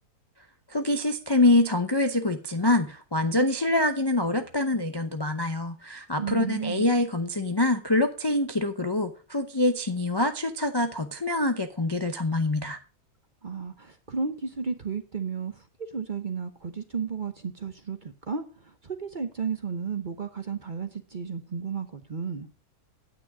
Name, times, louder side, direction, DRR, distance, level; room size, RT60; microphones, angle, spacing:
voice 1, 0.7-12.8, left 2 dB, 30° left, 6 dB, 0.4 m, -25 dB
voice 2, 6.2-6.9 13.4-22.5, right 5 dB, 40° right, 8 dB, 0.8 m, -33 dB
9.5 x 9.0 x 4.8 m, 0.35 s
omnidirectional pair, 1.7 m